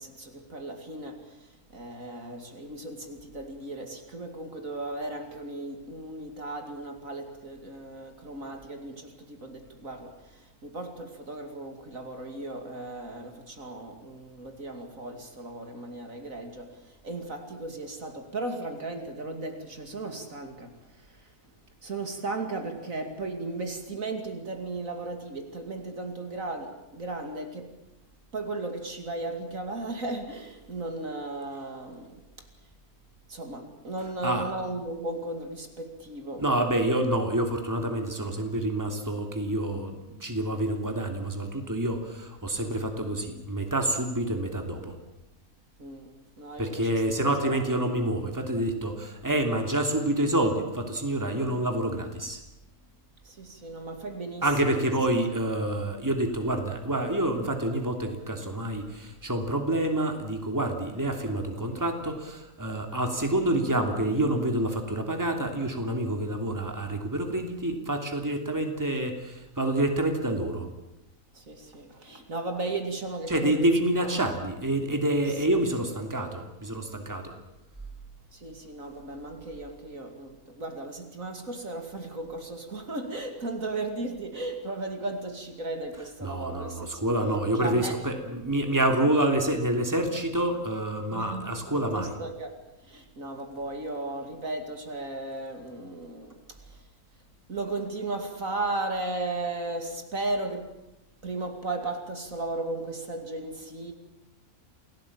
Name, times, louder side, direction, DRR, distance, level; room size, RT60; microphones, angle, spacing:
voice 1, 0.0-21.5 21.8-27.8 28.3-32.5 33.3-36.4 45.8-47.7 53.2-54.9 71.3-73.7 74.0-74.1 78.3-87.0 87.6-88.0 91.1-96.8 97.5-100.8 101.2-103.9, right 2 dB, 60° right, 5 dB, 3.0 m, -36 dB
voice 2, 36.4-44.9 46.6-52.4 54.4-70.7 73.3-77.3 86.2-92.1, right 1 dB, 10° right, 4 dB, 3.0 m, -27 dB
28.5 x 18.0 x 8.8 m, 0.94 s
omnidirectional pair, 1.6 m